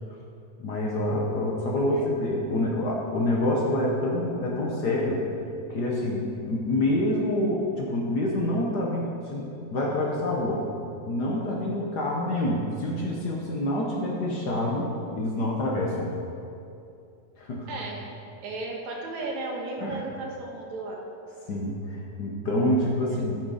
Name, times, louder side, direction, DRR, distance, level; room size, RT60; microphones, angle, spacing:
voice 1, 0.6-5.2 5.7-10.6 11.1-16.1 17.4-17.7 19.8-20.0 21.5-23.4, left 1 dB, 70° left, -2 dB, 0.9 m, -27 dB
voice 2, 1.8-2.1 2.4-2.7 17.7-21.0 23.0-23.3, right 2 dB, 75° right, -1 dB, 2.7 m, -36 dB
13.0 x 6.6 x 5.0 m, 2.7 s
omnidirectional pair, 3.3 m